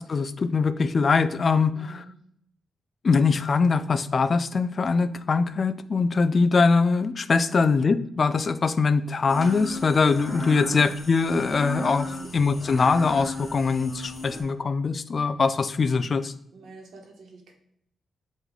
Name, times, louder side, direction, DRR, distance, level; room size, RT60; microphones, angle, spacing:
voice 1, 0.1-2.0 3.0-12.1 12.3-16.3, left 4 dB, 35° left, 13 dB, 0.4 m, -22 dB
voice 2, 1.7-2.1 10.6-11.0 12.0-12.5 16.5-17.5, right 5 dB, 75° right, 1 dB, 1.4 m, -46 dB
sound 1, 9.3-14.4, left 1 dB, 15° left, 2.0 m, -36 dB
7.9 x 3.2 x 3.8 m, 0.72 s
wide cardioid pair, 150°, 0 cm